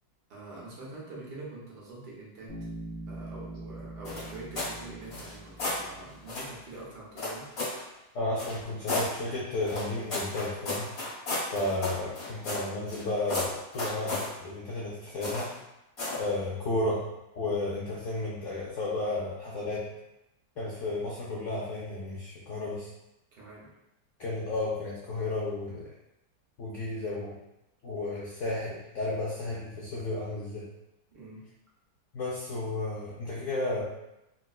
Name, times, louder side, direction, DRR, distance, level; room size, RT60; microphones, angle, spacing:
voice 1, 0.3-2.5 3.1-7.4 11.5-11.7 23.3-23.7 31.1-31.4, right 2 dB, 75° right, -5 dB, 1.5 m, -45 dB
Bass guitar, 2.5-6.2, right 2 dB, 50° right, 0.8 m, -43 dB
sound 1, 4.0-4.8 5.1-5.8 6.3-6.5 7.2-7.8 8.4-9.1 9.7-13.0 13.3-14.3 15.2-15.6 16.0-16.3, left 2 dB, 55° left, 1.8 m, -33 dB
voice 2, 8.1-10.9 11.5-15.5 16.1-17.0 17.3-19.9 20.6-22.9 24.2-25.9 26.6-27.4 27.8-30.7 32.1-33.8, left 2 dB, 70° left, -6 dB, 0.7 m, -33 dB
4.0 x 2.1 x 2.3 m, 0.91 s
omnidirectional pair, 1.9 m